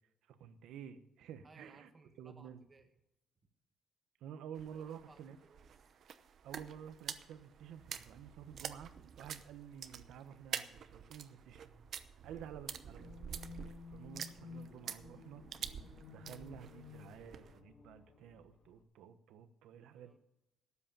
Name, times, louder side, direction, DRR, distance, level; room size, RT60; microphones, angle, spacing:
voice 1, 0.3-1.9 2.2-2.6 4.2-5.4 6.4-11.8 12.2-13.1 13.6-15.4 16.1-20.2, right 8 dB, 90° right, 11 dB, 1.1 m, -51 dB
voice 2, 1.4-2.9 4.7-5.9 19.7-20.2, right 3 dB, 25° right, 6 dB, 1.6 m, -63 dB
sound 1, 4.5-17.6, right 8 dB, 55° right, 0.8 m, -48 dB
sound 2, 12.8-18.8, left 5 dB, 55° left, 1.5 m, -54 dB
12.5 x 8.5 x 7.1 m, 0.93 s
cardioid pair, 130°, 0 cm